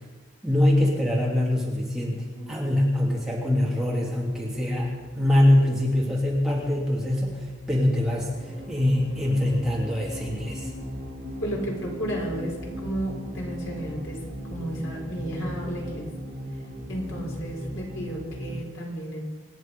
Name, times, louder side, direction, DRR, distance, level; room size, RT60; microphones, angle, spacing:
voice 1, 0.4-2.2 2.5-7.4 7.7-8.3 8.7-10.7, left 1 dB, ahead, -4 dB, 2.8 m, -23 dB
sound 1, 2.3-18.6, equal, 25° right, 6.3 m, -39 dB
voice 2, 11.4-14.2 14.5-16.1 16.9-19.2, equal, 70° left, -1 dB, 4.6 m, -33 dB
26.0 x 10.5 x 5.4 m, 1.3 s
head